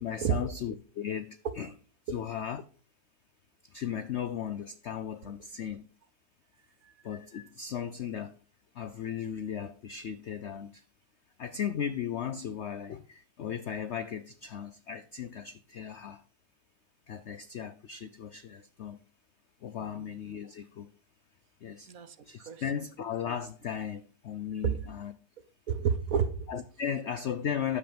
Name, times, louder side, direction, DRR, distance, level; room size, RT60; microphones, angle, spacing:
voice 1, 0.0-1.7 2.1-2.6 3.7-5.8 7.0-8.3 8.8-10.8 11.4-16.2 17.1-19.0 19.6-20.9 21.6-21.9 22.3-25.1 26.5-27.8, left 8 dB, 70° left, 0.6 m, -36 dB
voice 2, 19.8-20.2 21.9-22.6 24.6-24.7 25.7-26.5, right 7 dB, 55° right, 1.3 m, -31 dB
10.0 x 7.4 x 5.1 m
omnidirectional pair, 1.9 m